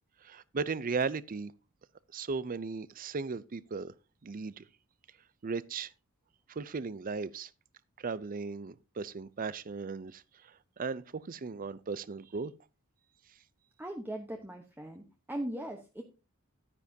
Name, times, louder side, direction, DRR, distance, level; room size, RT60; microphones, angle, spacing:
voice 1, 0.2-1.5 2.1-3.9 4.2-4.6 5.4-5.9 6.6-7.5 8.0-10.2 10.8-12.5, right 4 dB, 40° right, 0.5 m, -36 dB
voice 2, 13.8-16.0, right 1 dB, 10° right, 1.0 m, -39 dB
11.5 x 9.8 x 2.7 m
head